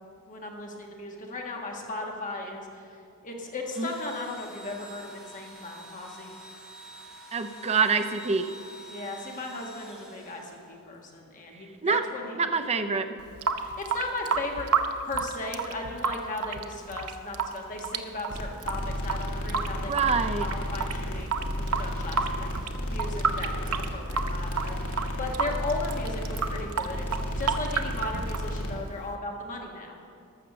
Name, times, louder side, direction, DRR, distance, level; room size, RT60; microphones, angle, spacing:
voice 1, 0.3-2.9 3.2-6.3 8.9-12.4 12.7-12.8 13.5-14.7 15.0-27.1 27.4-30.1, left 2 dB, 35° left, 0 dB, 1.5 m, -37 dB
Engine / Drill, 3.6-11.0, right 1 dB, ahead, 2.8 m, -47 dB
voice 2, 7.3-8.5 11.8-12.0 12.4-13.1 19.9-20.5, right 5 dB, 30° right, 8 dB, 0.5 m, -25 dB
Water tap faucet / Sink (filling or washing) / Drip, 13.2-29.1, right 5 dB, 75° right, 0.6 m, -31 dB
sound 1, 18.3-28.7, equal, 80° left, 2.0 m, -33 dB
13.0 x 6.6 x 6.7 m, 2.4 s
head